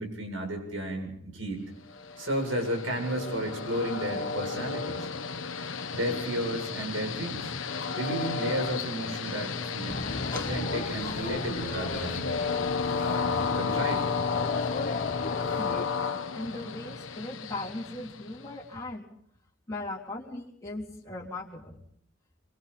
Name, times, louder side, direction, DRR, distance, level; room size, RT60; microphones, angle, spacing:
voice 1, 0.0-1.6 2.2-5.1 5.9-7.5 8.0-10.0 10.3-12.3 13.0-14.0, right 1 dB, 80° right, 4 dB, 7.8 m, -33 dB
Train, 1.9-18.6, left 5 dB, 70° left, 1.2 m, -33 dB
sound 1, 9.9-15.9, left 3 dB, 40° left, 1.1 m, -36 dB
voice 2, 15.6-15.9 16.3-19.1 19.7-21.8, left 2 dB, 15° left, -4 dB, 3.6 m, -38 dB
26.0 x 24.5 x 4.3 m, 0.63 s
head